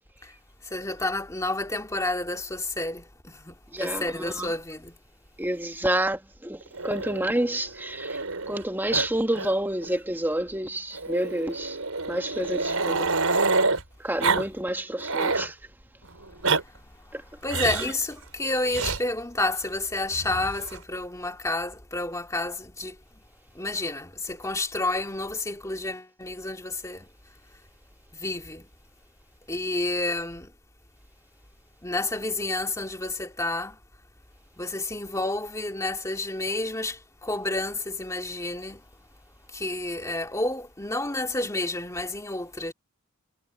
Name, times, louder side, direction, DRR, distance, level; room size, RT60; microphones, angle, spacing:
voice 1, 0.6-5.0 16.3-17.2 17.4-23.2 23.5-27.1 28.1-28.7 29.5-30.5 31.8-33.8 34.6-38.8 39.5-42.7, left 2 dB, 15° left, 2.2 m, -30 dB
voice 2, 3.7-4.0 4.4-4.5 5.4-8.2 8.5-11.8 12.1-13.1 14.0-15.6 17.1-17.2 17.7-17.8, right 1 dB, 10° right, 1.2 m, -28 dB
Growling, 6.7-8.6 8.9-9.1 9.3-9.5 9.8-9.9 10.9-13.8 14.2-14.5 14.8-15.5 16.2-16.6 17.5-17.9 18.7-19.0 20.1-20.8, right 3 dB, 90° right, 5.2 m, -27 dB
head